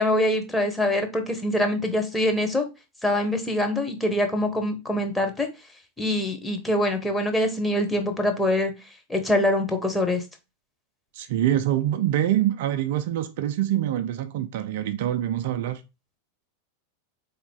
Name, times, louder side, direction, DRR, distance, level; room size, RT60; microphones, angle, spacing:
voice 1, 0.0-2.7 3.0-5.5 6.0-8.7 9.1-10.2, left 1 dB, 5° left, 1.0 m, -24 dB
voice 2, 11.1-15.8, right 12 dB, 50° right, 0.4 m, -25 dB
3.9 x 3.5 x 3.7 m
figure-of-eight pair, 90°, 0 cm